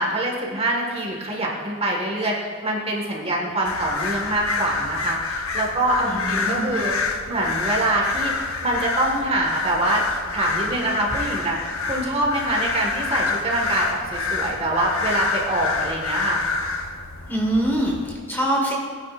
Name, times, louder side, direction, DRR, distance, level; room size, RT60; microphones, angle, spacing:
voice 1, 0.0-6.9 7.3-10.0 10.3-16.4, right 1 dB, 30° right, -1 dB, 1.7 m, -24 dB
sound 1, 3.6-18.2, left 4 dB, 85° left, 1.1 m, -28 dB
voice 2, 6.0-6.6 17.3-18.7, right 1 dB, 10° left, -2 dB, 1.7 m, -24 dB
19.5 x 9.4 x 2.6 m, 2.2 s
head